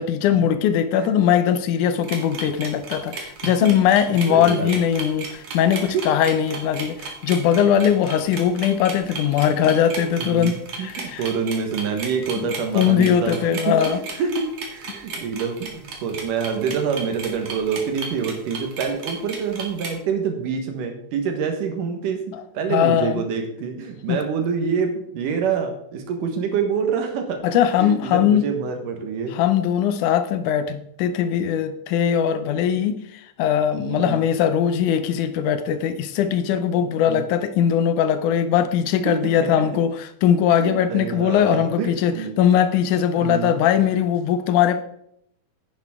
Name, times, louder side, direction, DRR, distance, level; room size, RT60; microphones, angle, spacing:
voice 1, 0.0-11.2 12.4-14.0 22.7-23.2 24.1-24.2 27.4-28.5 29.3-33.0 33.4-39.9 40.2-44.8, left 9 dB, 75° left, 10 dB, 2.2 m, -20 dB
sound 1, 2.0-19.9, right 4 dB, 55° right, 2.6 m, -34 dB
voice 2, 4.3-4.7 5.9-6.0 10.2-22.2 22.5-27.4 27.8-29.3 33.8-34.2 36.8-37.2 39.0-39.5 40.6-42.4 43.2-43.6, right 6 dB, 85° right, 4 dB, 2.9 m, -26 dB
10.0 x 9.1 x 3.6 m, 0.73 s
omnidirectional pair, 3.6 m